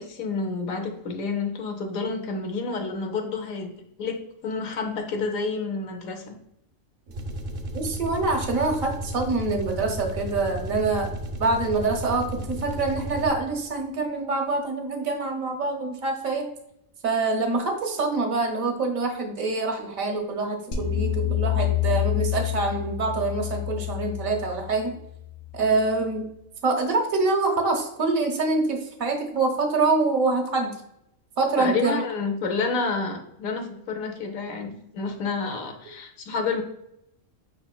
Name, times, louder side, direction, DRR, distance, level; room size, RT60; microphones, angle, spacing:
voice 1, 0.0-3.7 4.0-6.3 31.6-36.6, left 4 dB, 75° left, 4 dB, 1.2 m, -29 dB
sound 1, 7.1-13.6, equal, 50° right, 0.8 m, -34 dB
voice 2, 7.7-11.1 11.4-16.5 17.0-25.0 25.5-26.3 26.6-30.7 31.4-32.0, right 3 dB, 80° right, 3 dB, 1.4 m, -25 dB
sound 2, 20.7-25.9, left 13 dB, 50° left, 0.7 m, -28 dB
5.7 x 4.1 x 2.2 m, 0.80 s
omnidirectional pair, 1.4 m